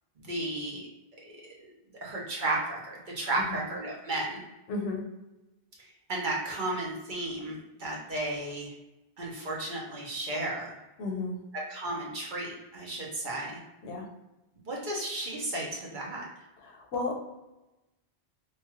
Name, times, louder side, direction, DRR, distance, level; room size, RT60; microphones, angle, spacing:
voice 1, 0.3-0.8 2.0-2.8 3.1-4.4 5.8-8.7 9.2-10.7 11.7-13.6 14.7-16.2, right 2 dB, 50° right, -3 dB, 0.8 m, -33 dB
voice 2, 4.7-5.0 11.0-11.4 13.8-14.1 16.6-17.2, left 3 dB, 85° left, 2 dB, 1.0 m, -33 dB
3.0 x 2.3 x 2.9 m, 0.99 s
omnidirectional pair, 1.1 m